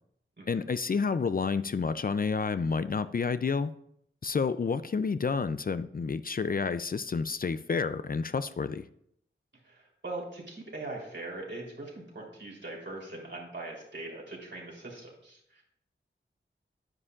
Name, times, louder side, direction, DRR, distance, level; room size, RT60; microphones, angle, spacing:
voice 1, 0.5-3.7 4.2-8.8, left 5 dB, 45° left, 13 dB, 0.4 m, -29 dB
voice 2, 9.6-15.6, right 2 dB, 60° right, -3 dB, 3.5 m, -41 dB
9.9 x 9.7 x 2.4 m, 0.72 s
wide cardioid pair, 75°, 20 cm